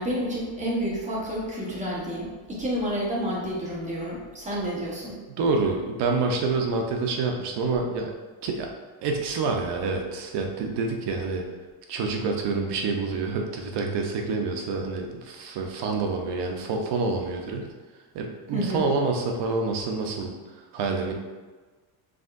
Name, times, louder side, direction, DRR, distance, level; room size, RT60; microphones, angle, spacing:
voice 1, 0.0-5.2 18.5-18.8, equal, 15° right, -5 dB, 1.0 m, -29 dB
voice 2, 5.3-8.1 8.4-8.7 9.0-11.4 11.9-17.7 18.1-20.3 20.7-21.1, right 4 dB, 60° right, 2 dB, 0.8 m, -27 dB
4.9 x 3.5 x 2.5 m, 1.3 s
cardioid pair, 140°, 47 cm